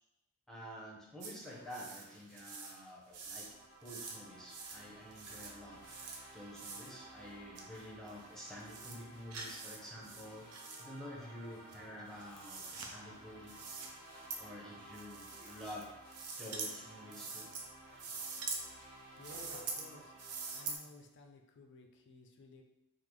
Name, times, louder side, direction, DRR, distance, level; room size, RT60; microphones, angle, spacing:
voice 1, 0.5-3.5 3.8-5.8 6.3-10.5 10.8-13.5 14.4-15.8 16.4-17.5, equal, ahead, -5 dB, 0.6 m, -49 dB
sound 1, 1.1-20.7, equal, 70° right, 1.5 m, -63 dB
sound 2, 1.2-1.3 1.7-2.1 2.4-2.8 3.1-3.5 3.8-4.2 4.5-4.8 5.1-5.5 5.8-6.2 6.5-6.9 7.6-7.7 8.1-8.2 8.6-9.0 9.3-9.8 10.0-10.8 11.7-12.9 13.5-13.9 14.3-14.4 14.9-15.8 16.1-16.7 17.1-17.6 18.0-18.6 19.2-19.9 20.2-20.8, right 4 dB, 90° right, 0.5 m, -44 dB
sound 3, 3.1-20.8, right 1 dB, 40° right, 1.1 m, -56 dB
voice 2, 19.2-20.1 20.5-22.6, left 2 dB, 55° left, 3 dB, 0.4 m, -56 dB
3.7 x 2.0 x 3.1 m, 0.91 s
head